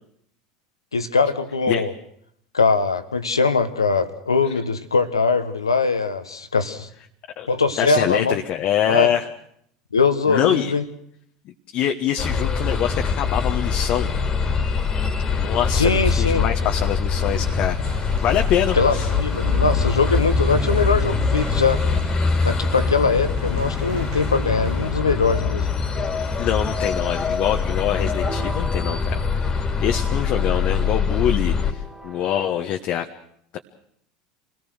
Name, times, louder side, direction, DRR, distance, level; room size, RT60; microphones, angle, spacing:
voice 1, 0.9-1.9 2.5-6.9 7.5-8.4 8.9-9.1 9.9-10.8 15.7-16.4 18.7-21.8 22.4-25.7, left 4 dB, 90° left, 11 dB, 1.4 m, -21 dB
voice 2, 7.8-9.3 10.3-10.7 11.4-14.1 15.4-17.8 18.2-19.1 26.4-33.1 33.5-33.6, left 10 dB, 50° left, 4 dB, 1.3 m, -24 dB
sound 1, 12.2-31.7, left 5 dB, 30° left, 2.5 m, -23 dB
sound 2, 17.3-25.0, right 9 dB, 60° right, 1.8 m, -39 dB
sound 3, 28.3-32.6, right 1 dB, 10° right, 2.2 m, -40 dB
27.0 x 18.5 x 6.5 m, 0.71 s
hypercardioid pair, 80°, 2 cm